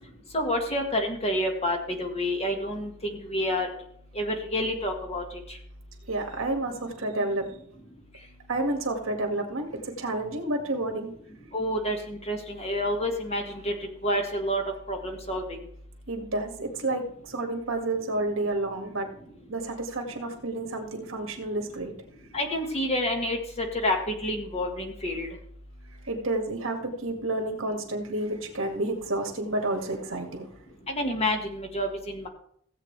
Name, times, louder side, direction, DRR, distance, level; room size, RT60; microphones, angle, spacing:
voice 1, 0.3-3.7 4.1-5.2 11.5-13.7 14.0-14.6 14.9-15.6 22.3-25.3 30.9-32.3, left 1 dB, 30° left, 3 dB, 1.7 m, -28 dB
voice 2, 6.1-7.5 8.5-11.1 16.1-19.1 19.5-21.9 26.0-30.5, right 2 dB, 65° right, 3 dB, 2.0 m, -30 dB
16.5 x 8.2 x 3.3 m, 0.66 s
head